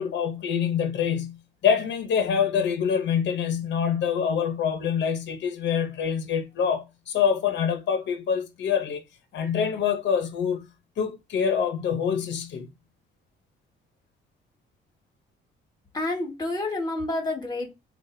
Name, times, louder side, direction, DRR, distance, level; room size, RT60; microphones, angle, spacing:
voice 1, 0.0-9.0 9.3-10.7 11.0-12.7, left 7 dB, 65° left, 0.8 m, -25 dB
voice 2, 15.9-17.7, left 2 dB, 20° left, 1.5 m, -29 dB
3.9 x 2.4 x 2.6 m
cardioid pair, 90°, 20 cm